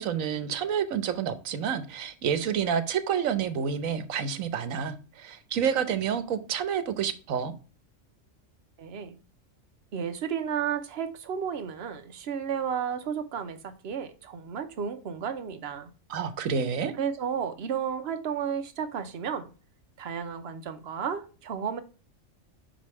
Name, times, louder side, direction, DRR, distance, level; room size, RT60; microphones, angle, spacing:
voice 1, 0.0-7.5 16.1-16.9, right 7 dB, 90° right, 1.2 m, -29 dB
voice 2, 8.8-9.2 9.9-15.9 17.0-19.5 20.0-21.8, right 7 dB, 55° right, 1.0 m, -32 dB
6.0 x 5.2 x 3.1 m
omnidirectional pair, 1.4 m